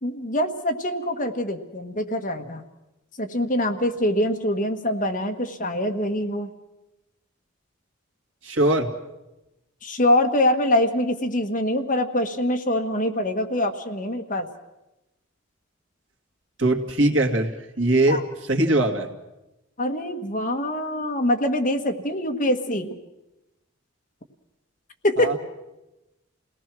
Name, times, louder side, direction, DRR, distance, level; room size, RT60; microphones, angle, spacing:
voice 1, 0.0-2.6 3.2-6.5 9.8-14.5 18.1-18.2 19.8-22.9 25.0-25.3, left 1 dB, 40° left, 4 dB, 1.5 m, -24 dB
voice 2, 8.4-8.9 16.6-18.2 18.5-19.1 25.2-25.4, right 1 dB, 70° right, 3 dB, 2.2 m, -21 dB
28.5 x 18.5 x 6.2 m, 0.97 s
head